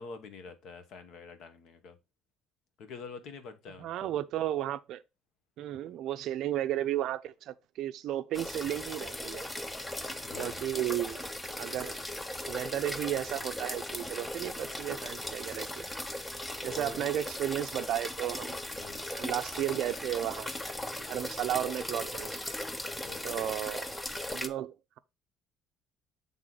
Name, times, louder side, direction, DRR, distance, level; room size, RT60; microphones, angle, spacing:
voice 1, 0.0-2.0 2.8-4.1 10.2-10.6 14.5-14.7 16.7-17.1 18.7-19.1 22.8-23.5, left 4 dB, 55° left, 1.1 m, -46 dB
voice 2, 3.8-5.0 5.6-9.5 10.4-11.2 11.6-12.0 12.5-15.9 16.6-18.6 19.1-20.6 20.9-22.4 23.2-23.9 24.3-25.0, right 12 dB, 55° right, 0.4 m, -34 dB
sound 1, 8.3-24.5, left 1 dB, 5° left, 0.4 m, -38 dB
7.6 x 3.6 x 3.9 m
cardioid pair, 170°, 0 cm